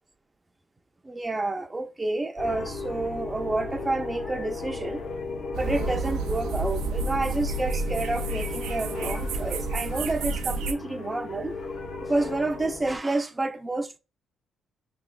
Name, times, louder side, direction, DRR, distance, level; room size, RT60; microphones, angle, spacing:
voice 1, 1.0-5.0 5.5-11.6 12.0-14.0, right 2 dB, 20° right, 0.4 m, -29 dB
sound 1, 2.4-13.0, left 3 dB, 75° left, 1.0 m, -36 dB
sound 2, 5.5-10.7, right 3 dB, 85° right, 0.4 m, -30 dB
5.6 x 3.1 x 2.3 m
cardioid pair, 90°, 0 cm